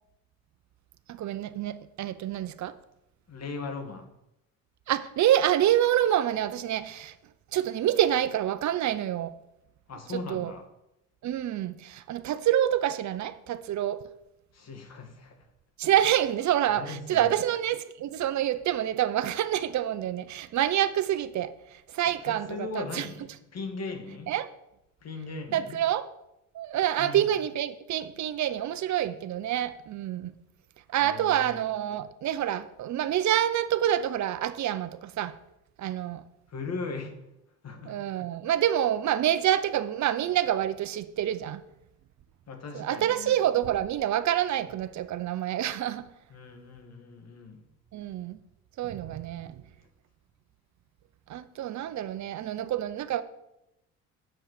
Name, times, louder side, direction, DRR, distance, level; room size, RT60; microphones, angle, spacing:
voice 1, 1.1-2.7 4.9-7.1 7.5-9.3 10.1-10.5 11.2-14.0 15.8-23.1 24.3-24.5 25.5-26.1 26.5-30.3 30.9-35.4 35.8-36.2 37.9-41.6 42.7-46.1 47.9-48.4 48.8-49.6 51.3-53.2, right 11 dB, 55° right, 0.7 m, -27 dB
voice 2, 3.3-4.1 9.9-10.6 14.5-15.5 16.8-17.3 22.3-23.2 23.5-24.3 25.0-25.8 27.0-27.2 31.0-31.6 36.5-37.1 37.6-38.0 42.5-43.3 46.3-47.6, left 4 dB, 50° left, 2.1 m, -38 dB
7.7 x 7.4 x 6.7 m
supercardioid pair, 80°, 33 cm